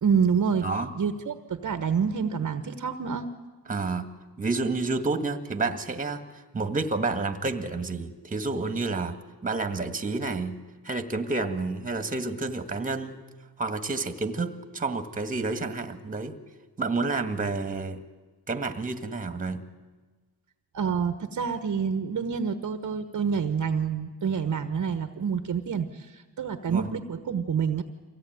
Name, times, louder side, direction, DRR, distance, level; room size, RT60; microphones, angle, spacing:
voice 1, 0.0-0.7 1.0-3.3 20.7-27.8, right 6 dB, 50° right, 9 dB, 1.2 m, -27 dB
voice 2, 3.7-4.1 4.4-9.2 9.4-10.6 10.8-13.2 13.6-16.3 16.8-18.0 18.5-19.6 26.7-26.9, right 3 dB, 20° right, 8 dB, 1.7 m, -29 dB
24.0 x 16.5 x 9.3 m, 1.3 s
cardioid pair, 90°, 39 cm